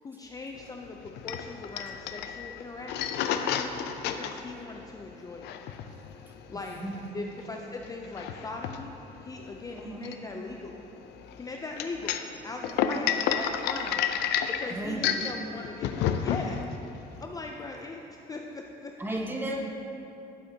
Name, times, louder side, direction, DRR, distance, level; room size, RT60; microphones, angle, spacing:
voice 1, 0.0-3.7 4.1-5.5 6.5-6.8 7.1-10.8 11.4-14.1 14.5-15.9 16.2-16.7 17.2-18.9 19.5-19.6, left 3 dB, 20° left, 2 dB, 0.4 m, -40 dB
sound 1, 0.6-17.2, left 8 dB, 85° left, 0.5 m, -32 dB
voice 2, 6.5-7.0 9.7-10.1 14.7-15.3 19.0-19.6, right 1 dB, 10° right, 1 dB, 1.0 m, -35 dB
11.0 x 7.8 x 2.8 m, 2.9 s
cardioid pair, 110°, 17 cm